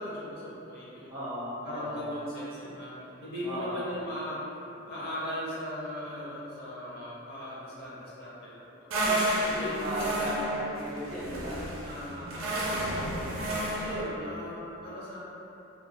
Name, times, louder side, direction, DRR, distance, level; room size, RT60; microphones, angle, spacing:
voice 1, 0.0-1.2 1.6-2.9 3.2-4.4 4.9-8.9 9.4-10.2 11.2-13.3 13.8-15.2, left 1 dB, 50° left, -8 dB, 0.5 m, -38 dB
voice 2, 1.1-2.0 3.4-3.8 9.0-11.6, equal, 20° right, -11 dB, 0.4 m, -36 dB
sound 1, 8.9-14.1, right 1 dB, 85° right, 0.5 m, -31 dB
2.2 x 2.1 x 3.5 m, 3.0 s
head